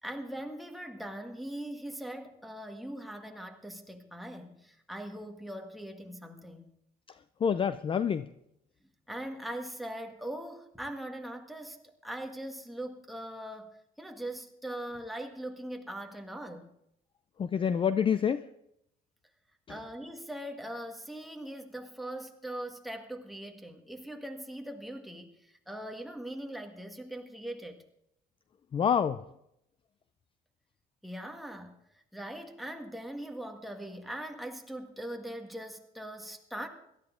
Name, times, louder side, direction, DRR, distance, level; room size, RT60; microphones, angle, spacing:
voice 1, 0.0-6.7 9.1-13.7 14.0-16.7 19.7-27.8 31.0-36.7, right 1 dB, ahead, 3 dB, 1.7 m, -41 dB
voice 2, 7.4-8.3 17.4-18.5 28.7-29.2, left 7 dB, 30° left, 13 dB, 0.4 m, -27 dB
17.5 x 13.0 x 3.8 m, 0.79 s
cardioid pair, 110°, 17 cm